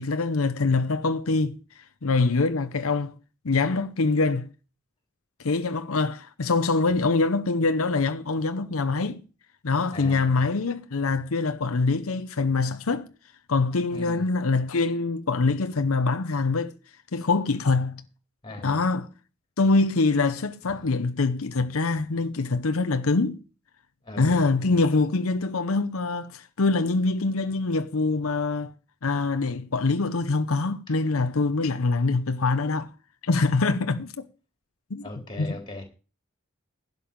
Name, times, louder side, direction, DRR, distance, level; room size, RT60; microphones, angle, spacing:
voice 1, 0.0-3.1 3.4-4.5 5.4-9.2 9.6-13.1 13.5-16.8 17.1-18.0 18.6-19.1 19.6-23.4 24.2-28.7 29.0-32.9 33.2-34.2 34.9-35.0 35.4-35.5, left 3 dB, 85° left, 0.8 m, -24 dB
voice 2, 9.9-10.5 13.9-14.2 18.4-18.8 20.8-20.9 24.0-24.8 30.9-31.0 35.0-35.8, left 2 dB, 20° left, 3.4 m, -39 dB
11.5 x 5.5 x 8.8 m
head